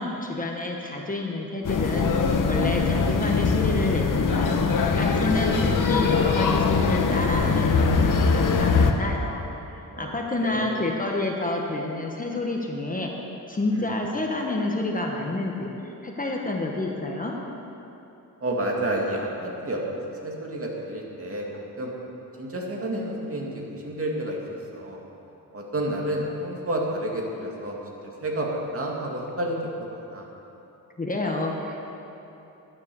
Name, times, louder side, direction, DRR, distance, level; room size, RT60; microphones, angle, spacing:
voice 1, 0.0-4.6 4.9-9.4 10.0-13.1 13.5-17.3 31.0-31.8, left 2 dB, 25° left, 0 dB, 1.1 m, -29 dB
sound 1, 1.6-8.9, left 4 dB, 60° left, 1.0 m, -22 dB
voice 2, 9.9-10.7 13.7-13.9 18.4-21.4 21.8-21.9 22.4-24.4 24.7-25.0 25.5-27.8 28.2-30.2, right 1 dB, 40° right, -2 dB, 2.2 m, -30 dB
12.5 x 9.8 x 6.9 m, 2.9 s
wide cardioid pair, 130°, 36 cm